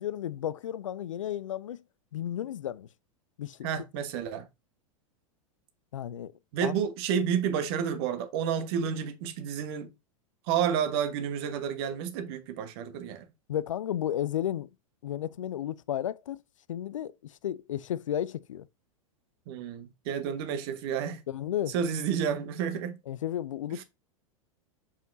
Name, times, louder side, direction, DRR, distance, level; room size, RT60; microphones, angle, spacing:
voice 1, 0.0-1.8 2.1-2.9 3.4-3.7 5.9-6.3 6.6-6.7 13.5-14.7 15.0-16.4 16.7-18.7 21.3-21.7 23.1-23.8, left 11 dB, 65° left, 0.4 m, -33 dB
voice 2, 3.6-4.5 6.5-9.9 10.5-13.3 19.5-21.2 21.7-23.0 23.7-23.8, right 8 dB, 45° right, 1.2 m, -30 dB
7.0 x 5.6 x 2.6 m
figure-of-eight pair, 90°, 18 cm